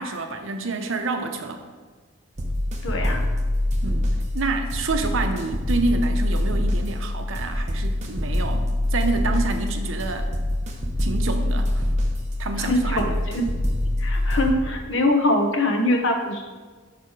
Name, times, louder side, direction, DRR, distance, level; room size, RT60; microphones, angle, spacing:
voice 1, 0.0-1.6 3.8-10.3 10.8-11.9 12.4-13.2, right 3 dB, 70° right, 6 dB, 0.7 m, -28 dB
sound 1, 2.4-14.5, left 1 dB, 35° right, 0.8 m, -25 dB
voice 2, 2.8-3.3 12.6-13.0 13.3-13.5 14.0-16.5, left 1 dB, 60° left, 4 dB, 0.8 m, -23 dB
5.9 x 4.7 x 4.7 m, 1.5 s
head